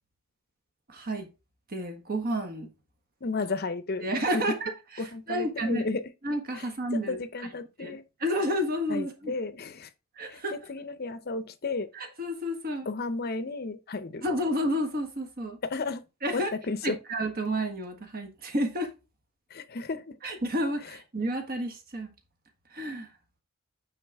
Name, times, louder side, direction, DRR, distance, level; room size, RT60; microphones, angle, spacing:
voice 1, 0.9-1.3 1.7-2.7 4.0-4.7 5.3-5.9 6.2-7.2 7.8-9.3 10.2-10.6 11.9-12.9 14.2-15.6 16.2-16.5 16.8-18.9 20.2-22.1 22.7-23.1, equal, 45° right, 1.4 m, -30 dB
voice 2, 3.2-4.6 5.0-6.0 6.5-8.0 8.9-9.9 10.3-11.9 12.8-14.2 15.6-16.0 16.3-17.0 19.5-20.2 20.8-21.0, left 3 dB, 45° left, 0.6 m, -33 dB
8.8 x 3.8 x 3.4 m
head